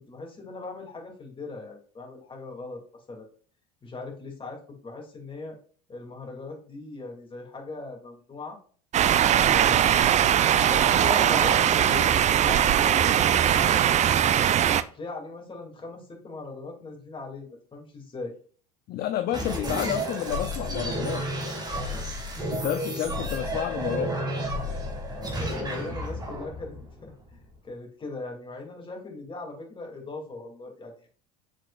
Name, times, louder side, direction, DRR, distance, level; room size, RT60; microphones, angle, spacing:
voice 1, 0.1-3.3 3.8-5.6 5.9-8.6 9.5-14.5 14.9-18.3 21.7-22.1 25.1-31.1, left 3 dB, 25° left, 2.6 m, -40 dB
sound 1, 8.9-14.8, right 10 dB, 35° right, 0.5 m, -20 dB
voice 2, 18.9-21.7 22.5-24.2, left 11 dB, 50° left, 0.6 m, -30 dB
sound 2, 19.3-27.5, right 1 dB, 20° right, 2.1 m, -31 dB
7.3 x 5.3 x 2.5 m
hypercardioid pair, 75°, 21 cm